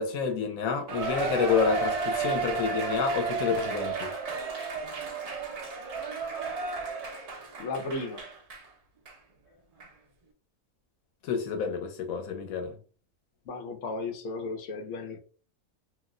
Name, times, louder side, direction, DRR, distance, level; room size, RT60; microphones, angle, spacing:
voice 1, 0.0-4.1 11.2-12.7, left 6 dB, 90° left, 1.1 m, -29 dB
Cheering, 0.9-8.7 9.1-9.2 9.8-9.9, right 4 dB, 75° right, 0.3 m, -32 dB
voice 2, 7.6-8.2 13.5-15.2, left 3 dB, 65° left, 1.0 m, -35 dB
2.6 x 2.1 x 3.6 m
omnidirectional pair, 1.4 m